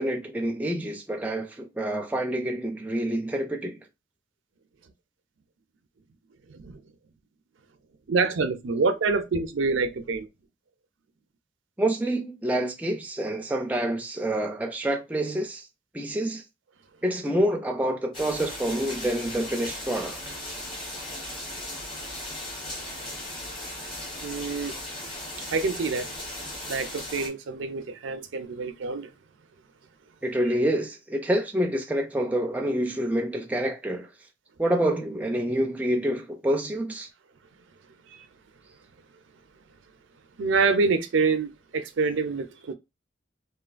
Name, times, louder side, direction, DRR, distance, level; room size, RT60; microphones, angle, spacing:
voice 1, 0.0-3.8 11.8-15.7 15.9-16.4 17.0-20.2 30.2-34.1 34.6-37.1, right 1 dB, 10° right, 0.3 m, -27 dB
voice 2, 6.5-6.8 8.1-10.3 24.2-24.7 25.5-26.1 26.7-29.1 38.1-38.3 40.4-42.7, right 4 dB, 85° right, 0.5 m, -26 dB
sound 1, 18.1-27.3, left 1 dB, 25° left, 0.9 m, -37 dB
3.1 x 2.3 x 2.4 m
head